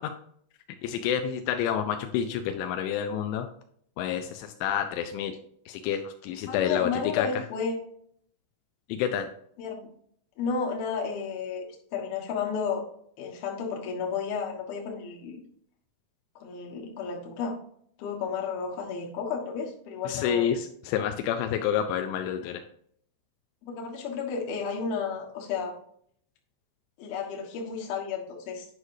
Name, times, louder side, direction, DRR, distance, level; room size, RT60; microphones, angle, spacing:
voice 1, 0.8-3.5 4.0-5.4 5.7-7.3 8.9-9.3 20.1-22.6, left 9 dB, 85° left, 6 dB, 2.6 m, -29 dB
voice 2, 6.5-7.8 9.6-9.9 10.4-11.6 11.9-12.8 13.2-15.4 16.4-17.5 18.0-20.6 23.6-25.7 27.0-28.7, left 6 dB, 65° left, -1 dB, 2.8 m, -32 dB
9.6 x 6.4 x 2.7 m, 0.65 s
omnidirectional pair, 5.7 m